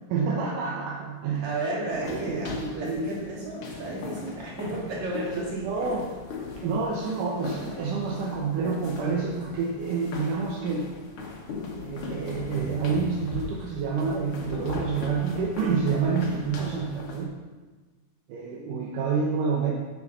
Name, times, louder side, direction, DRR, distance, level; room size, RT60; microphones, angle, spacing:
voice 1, 0.1-1.6 2.1-3.2 5.4-6.1 6.6-10.9 11.8-17.3 18.3-19.7, right 5 dB, 80° right, -2 dB, 2.5 m, -28 dB
voice 2, 1.4-5.6, right 2 dB, 60° right, -6 dB, 3.7 m, -33 dB
sound 1, 1.9-17.2, left 3 dB, 55° left, 1.6 m, -39 dB
8.2 x 7.0 x 5.5 m, 1.3 s
omnidirectional pair, 3.7 m